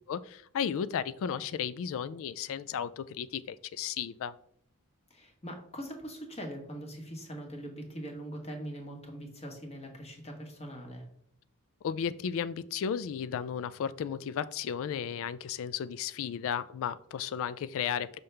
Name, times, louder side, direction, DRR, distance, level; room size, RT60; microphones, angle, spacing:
voice 1, 0.1-4.3 11.8-18.2, left 8 dB, 65° left, 16 dB, 0.3 m, -34 dB
voice 2, 5.1-11.0, equal, 30° left, 2 dB, 1.2 m, -42 dB
5.6 x 5.4 x 3.3 m, 0.67 s
head